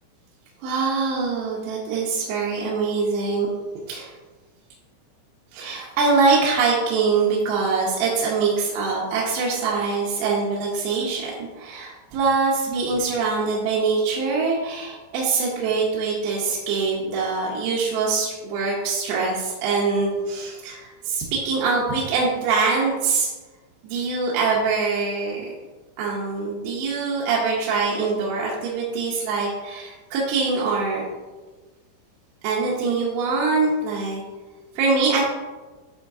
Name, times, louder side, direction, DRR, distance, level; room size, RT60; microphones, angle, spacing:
voice 1, 0.6-3.5 3.9-4.1 5.5-23.3 23.8-25.5 26.0-31.0 32.4-34.2 34.8-35.2, right 4 dB, 90° right, -5 dB, 3.7 m, -23 dB
11.0 x 3.9 x 2.7 m, 1.2 s
omnidirectional pair, 6.0 m